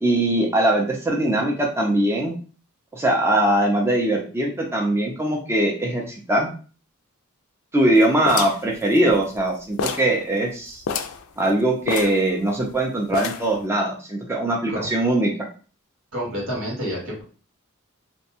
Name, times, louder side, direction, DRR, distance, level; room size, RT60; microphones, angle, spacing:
voice 1, 0.0-2.3 2.9-6.5 7.7-10.8 11.4-15.3, right 1 dB, 10° right, -1 dB, 0.4 m, -21 dB
sound 1, 8.3-9.5 9.8-10.2 10.5-10.6 10.8-11.2 11.9-12.7 13.1-13.6, left 6 dB, 70° left, 0.3 m, -29 dB
voice 2, 16.1-17.2, equal, 80° right, -4 dB, 1.4 m, -29 dB
2.6 x 2.1 x 2.8 m, 0.38 s
head